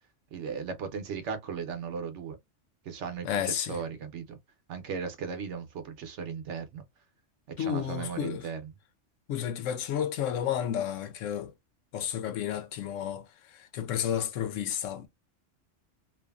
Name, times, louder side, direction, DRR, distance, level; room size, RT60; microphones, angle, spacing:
voice 1, 0.3-2.4 2.8-4.4 4.7-6.8 7.6-8.7, right 6 dB, 70° right, 1.0 m, -37 dB
voice 2, 3.2-3.8 7.6-8.5 9.3-11.5 11.9-13.2 13.5-15.1, left 9 dB, 85° left, 1.0 m, -31 dB
2.6 x 2.5 x 2.3 m
omnidirectional pair, 1.3 m